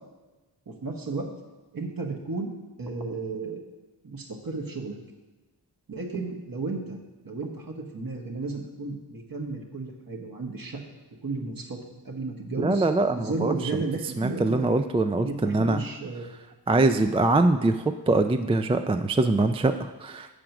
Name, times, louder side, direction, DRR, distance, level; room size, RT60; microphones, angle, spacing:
voice 1, 0.7-1.3 1.7-2.5 2.8-3.6 4.0-5.0 5.9-7.0 7.2-10.8 11.2-11.8 12.0-12.9 13.2-14.7 15.2-16.2, right 3 dB, 55° right, 2 dB, 1.4 m, -33 dB
voice 2, 12.6-13.8 14.2-15.8 16.7-20.3, right 2 dB, 15° right, 8 dB, 0.3 m, -23 dB
7.7 x 5.0 x 5.9 m, 1.2 s
cardioid pair, 60°, 42 cm